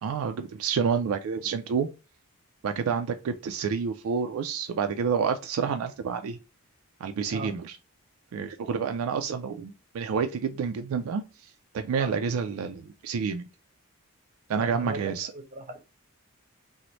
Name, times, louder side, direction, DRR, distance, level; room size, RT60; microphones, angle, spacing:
voice 1, 0.0-1.9 2.6-6.4 7.0-7.8 8.3-11.5 11.7-13.5 14.5-15.3, right 6 dB, 70° right, 0.3 m, -29 dB
voice 2, 14.6-15.8, right 1 dB, 35° right, 0.7 m, -37 dB
3.0 x 2.0 x 3.8 m
head